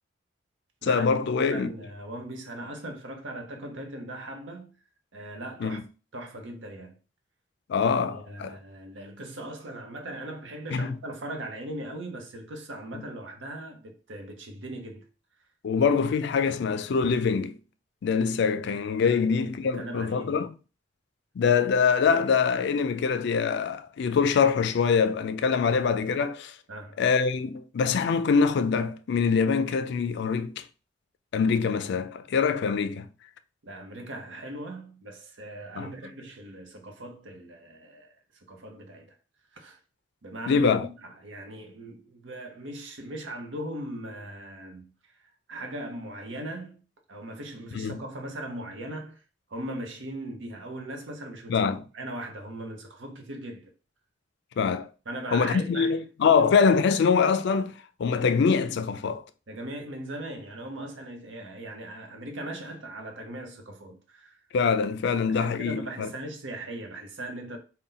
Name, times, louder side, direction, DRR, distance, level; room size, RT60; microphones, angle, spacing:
voice 1, 0.8-1.7 5.6-5.8 7.7-8.6 10.7-10.9 15.6-17.6 18.0-20.5 21.4-26.5 27.0-30.6 31.3-33.1 35.8-35.9 40.5-40.9 47.8-48.0 51.5-51.8 54.6-54.9 55.3-57.7 58.0-59.2 64.5-66.1, left 5 dB, 65° left, 0.4 m, -24 dB
voice 2, 1.4-4.8 5.1-5.8 6.1-7.0 7.8-15.1 15.7-15.8 19.0-20.4 25.7-25.8 26.7-27.0 33.6-39.1 39.5-39.8 40.2-49.2 49.5-53.7 55.1-56.0 59.5-64.4 65.1-67.6, right 1 dB, 75° right, 0.8 m, -39 dB
4.0 x 2.2 x 3.8 m
head